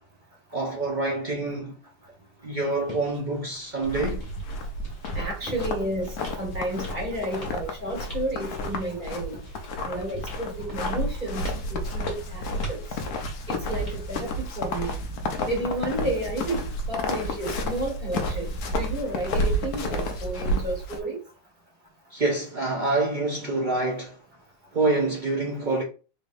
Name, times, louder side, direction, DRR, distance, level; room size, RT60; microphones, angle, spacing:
voice 1, 0.5-1.8 2.4-4.2 22.1-24.2 24.7-25.8, right 2 dB, 60° right, 0.5 m, -26 dB
sound 1, 2.8-14.0, left 2 dB, 25° left, 1.8 m, -46 dB
sound 2, 3.8-21.0, left 1 dB, 65° left, 1.1 m, -31 dB
voice 2, 5.1-9.4 9.8-12.8 13.5-15.0 15.4-21.2, right 1 dB, 25° right, 1.5 m, -32 dB
4.1 x 3.3 x 2.6 m
omnidirectional pair, 2.1 m